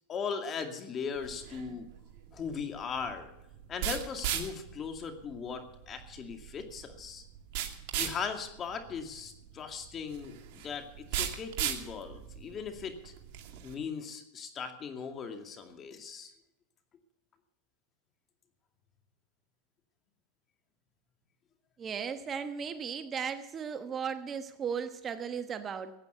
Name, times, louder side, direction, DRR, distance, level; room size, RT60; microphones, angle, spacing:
voice 1, 0.1-1.9 2.3-3.3 3.7-7.2 7.9-13.1 13.6-16.3, left 6 dB, 30° left, 6 dB, 2.3 m, -38 dB
sound 1, 1.2-13.7, right 10 dB, 60° right, 2.3 m, -38 dB
voice 2, 21.8-25.9, right 7 dB, 30° right, 10 dB, 1.1 m, -36 dB
15.5 x 9.0 x 8.1 m, 0.86 s
hypercardioid pair, 115°, 0 cm